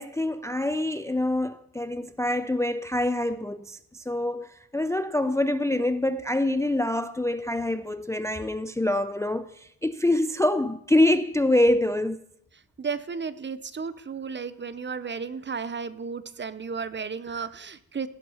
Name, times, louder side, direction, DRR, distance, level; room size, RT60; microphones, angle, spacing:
voice 1, 0.0-12.2, left 1 dB, 10° left, 0.4 m, -25 dB
voice 2, 12.8-18.1, right 5 dB, 30° right, 0.7 m, -33 dB
16.5 x 9.8 x 5.6 m
wide cardioid pair, 130°, 36 cm